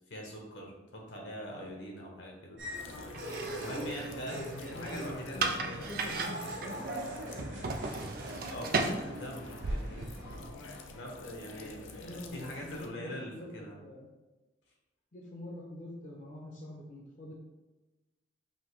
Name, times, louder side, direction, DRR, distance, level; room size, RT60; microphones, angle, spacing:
voice 1, 0.1-2.6 3.6-5.9 8.5-10.5 10.9-13.8, equal, 70° left, -1 dB, 1.1 m, -43 dB
squeaky trolley squeaky trolley, 2.6-10.4, right 1 dB, 70° right, 1.2 m, -43 dB
sound 1, 2.7-12.9, left 3 dB, 85° left, 0.5 m, -49 dB
sound 2, 3.1-10.5, right 3 dB, 50° right, 0.4 m, -37 dB
voice 2, 4.0-6.8 12.0-14.1 15.1-17.3, left 1 dB, 40° left, -3 dB, 0.6 m, -45 dB
5.4 x 2.8 x 3.2 m, 1.1 s
head